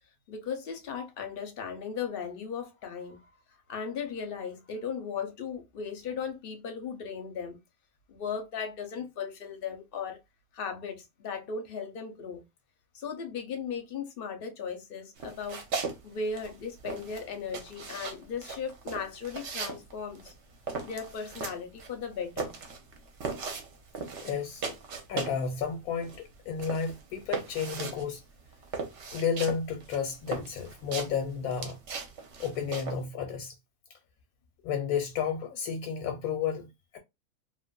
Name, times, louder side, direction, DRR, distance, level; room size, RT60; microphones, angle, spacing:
voice 1, 0.3-7.6 8.1-10.2 10.5-12.4 12.9-15.6 16.0-20.3 20.8-22.6, left 6 dB, 55° left, 0.7 m, -37 dB
sound 1, 15.2-16.0 16.2-25.5 25.8-33.0, right 4 dB, 60° right, 0.9 m, -38 dB
voice 2, 24.2-24.7 25.1-28.2 29.1-31.8 32.4-33.5 33.9-34.0 34.6-37.0, left 7 dB, 85° left, 1.1 m, -32 dB
3.0 x 2.4 x 2.2 m
omnidirectional pair, 1.5 m